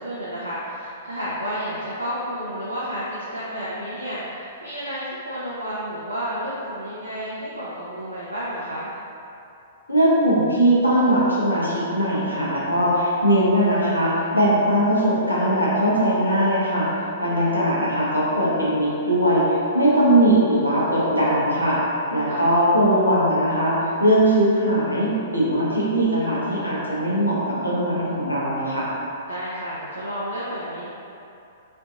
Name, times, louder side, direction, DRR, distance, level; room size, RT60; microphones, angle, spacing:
voice 1, 0.0-8.9 17.2-17.5 22.3-22.5 29.3-30.9, equal, 85° right, -8 dB, 0.6 m, -31 dB
voice 2, 9.9-16.9 17.2-21.8 22.1-28.9, right 1 dB, 85° left, -7 dB, 0.8 m, -20 dB
4.3 x 2.7 x 2.5 m, 2.7 s
figure-of-eight pair, 110°, 0 cm